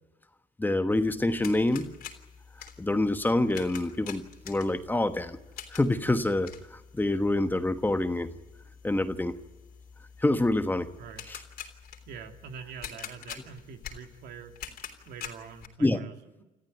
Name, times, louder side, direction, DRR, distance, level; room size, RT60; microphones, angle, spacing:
voice 1, 0.6-1.9 2.8-5.4 5.7-8.3 8.8-9.3 10.2-10.9 11.3-11.4 15.8-16.0, left 2 dB, 10° left, 8 dB, 1.2 m, -26 dB
sound 1, 0.9-15.7, left 8 dB, 65° left, 3.5 m, -46 dB
voice 2, 12.1-14.5 15.1-16.4, right 6 dB, 75° right, 4 dB, 2.7 m, -45 dB
28.0 x 14.5 x 9.3 m, 1.1 s
cardioid pair, 110°, 17 cm